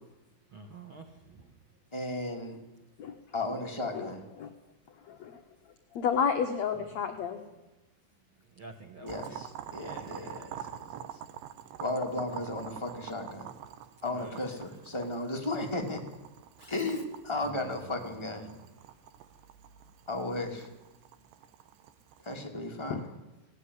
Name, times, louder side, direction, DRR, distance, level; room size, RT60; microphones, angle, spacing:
voice 1, 0.5-1.1 6.9-7.0 8.6-9.4 9.8-10.5 14.1-14.5 16.6-16.9 17.4-18.1, right 3 dB, 60° right, 4 dB, 1.3 m, -49 dB
voice 2, 1.9-2.6 3.3-4.2 9.0-10.4 11.8-13.5 14.0-16.0 16.7-18.5 20.1-20.7 22.2-23.0, left 2 dB, 10° left, 2 dB, 2.1 m, -34 dB
voice 3, 5.1-5.4 5.9-7.4 22.9-23.0, left 7 dB, 65° left, 6 dB, 1.8 m, -30 dB
Boiling, 9.1-22.3, right 10 dB, 85° right, 3.3 m, -46 dB
18.0 x 18.0 x 9.8 m, 1.0 s
omnidirectional pair, 4.9 m